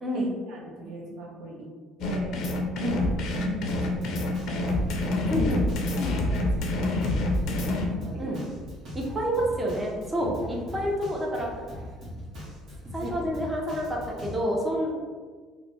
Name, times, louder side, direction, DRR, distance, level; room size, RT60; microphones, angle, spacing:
voice 1, 0.1-1.7 2.0-2.4 2.8-2.9 3.3-4.8 5.3-5.5 5.9-8.5 10.2-10.4 13.0-13.5, right 1 dB, 75° right, -1 dB, 0.6 m, -39 dB
sound 1, 2.0-7.9, left 1 dB, 65° left, 0.5 m, -27 dB
Drum kit, 3.7-14.3, left 1 dB, 55° right, 1.2 m, -40 dB
voice 2, 5.3-5.7 8.2-8.4 8.9-11.5 12.9-15.0, equal, 15° right, -2 dB, 0.6 m, -28 dB
3.1 x 2.0 x 3.0 m, 1.5 s
cardioid pair, 100°, 0 cm